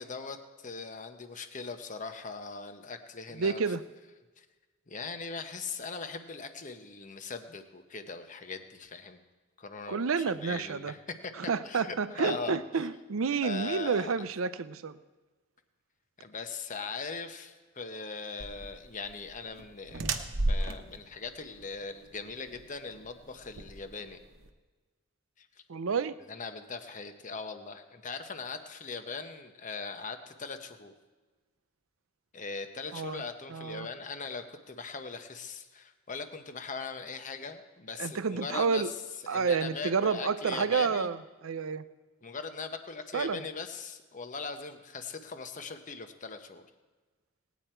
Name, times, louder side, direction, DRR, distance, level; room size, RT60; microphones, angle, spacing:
voice 1, 0.0-3.6 4.4-4.5 4.9-9.2 9.6-11.3 11.6-12.9 13.4-14.1 16.2-20.1 20.5-24.2 25.4-25.5 26.3-30.9 32.3-38.9 39.2-41.1 42.2-46.7, left 4 dB, 40° left, 8 dB, 0.9 m, -40 dB
voice 2, 3.3-3.8 9.9-10.9 11.4-15.0 25.7-26.1 32.9-33.2 33.5-33.9 38.0-38.9 39.3-41.8 43.1-43.4, right 5 dB, 85° right, 14 dB, 0.6 m, -30 dB
sound 1, 18.4-24.5, right 2 dB, 65° right, 0.9 m, -35 dB
18.5 x 9.3 x 4.4 m, 1.3 s
head